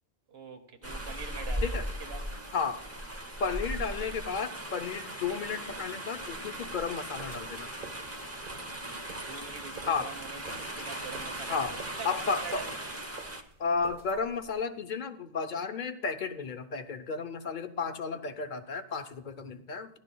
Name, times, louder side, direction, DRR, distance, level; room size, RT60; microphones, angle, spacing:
voice 1, 0.3-1.7 2.0-2.3 8.7-12.7, right 5 dB, 70° right, 1.3 m, -45 dB
sound 1, 0.8-13.4, right 1 dB, 15° right, 0.8 m, -38 dB
voice 2, 3.4-7.7 9.9-10.1 11.5-11.7 12.0-12.7 13.6-20.0, left 5 dB, 55° left, 0.8 m, -33 dB
sound 2, 7.2-14.6, right 3 dB, 55° right, 1.4 m, -51 dB
15.0 x 11.5 x 2.3 m
omnidirectional pair, 1.1 m